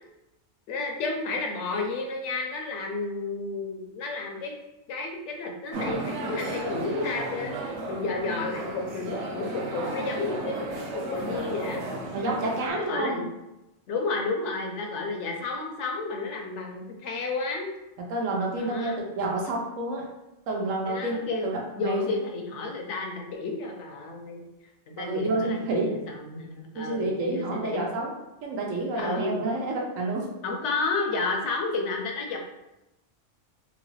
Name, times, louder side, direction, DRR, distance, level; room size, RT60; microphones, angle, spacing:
voice 1, 0.7-4.6 4.9-11.8 12.8-13.2 13.9-17.7 18.6-19.0 20.9-21.5 21.8-24.4 24.9-27.8 29.0-29.4 30.4-32.4, left 3 dB, 70° left, 2 dB, 0.8 m, -31 dB
sound 1, 5.7-12.7, right 1 dB, 65° right, 0.9 m, -34 dB
voice 2, 12.1-13.2 18.1-20.0 20.5-22.1 25.0-25.9 26.7-28.1 28.4-30.2, right 2 dB, 85° right, -1 dB, 1.1 m, -29 dB
3.0 x 2.5 x 3.1 m, 0.95 s
omnidirectional pair, 1.3 m